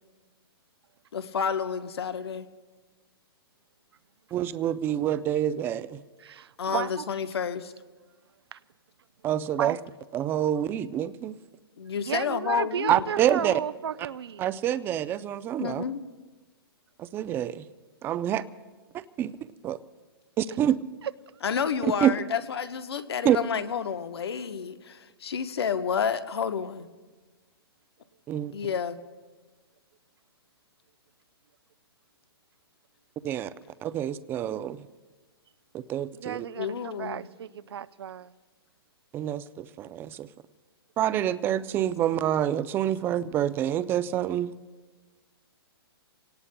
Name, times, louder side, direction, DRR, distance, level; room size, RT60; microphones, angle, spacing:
voice 1, 1.1-2.5 6.6-7.7 11.8-13.1 15.6-16.0 21.4-26.9 28.5-29.0 36.6-37.2, left 6 dB, 80° left, 1.0 m, -30 dB
voice 2, 4.3-6.0 9.2-9.8 10.1-11.4 12.9-13.6 14.4-15.8 17.0-17.6 18.0-18.4 18.9-19.3 19.6-19.8 20.4-20.8 22.0-22.1 23.2-23.4 28.3-28.5 33.2-33.5 33.8-34.9 35.7-36.4 39.1-40.3 41.0-44.5, right 11 dB, 15° right, 0.4 m, -27 dB
voice 3, 6.2-7.1 8.5-8.6 9.6-9.8 11.9-14.5 21.0-21.1 36.1-38.3, right 9 dB, 80° right, 0.5 m, -34 dB
27.5 x 18.0 x 2.2 m
hypercardioid pair, 145°, 13 cm